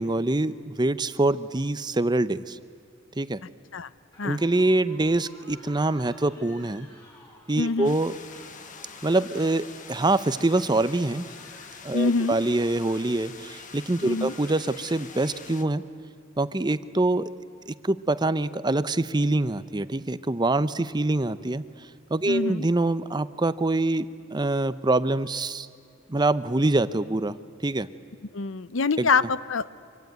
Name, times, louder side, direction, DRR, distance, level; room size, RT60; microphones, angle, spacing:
voice 1, 0.0-2.6 3.2-3.4 4.2-6.9 7.5-8.1 9.0-11.3 11.8-15.8 16.4-17.3 17.7-21.6 22.1-25.7 26.1-27.4 27.6-27.9 29.0-29.1, right 2 dB, 20° right, 14 dB, 0.7 m, -25 dB
sound 1, 4.1-15.5, left 2 dB, 20° left, 7.4 m, -52 dB
voice 2, 7.6-8.0 11.9-12.4 14.0-14.3 22.3-22.7 28.3-29.7, left 4 dB, 75° left, 16 dB, 0.8 m, -25 dB
sound 2, 7.8-15.6, left 6 dB, 40° left, 1.5 m, -45 dB
25.0 x 25.0 x 9.4 m, 2.4 s
head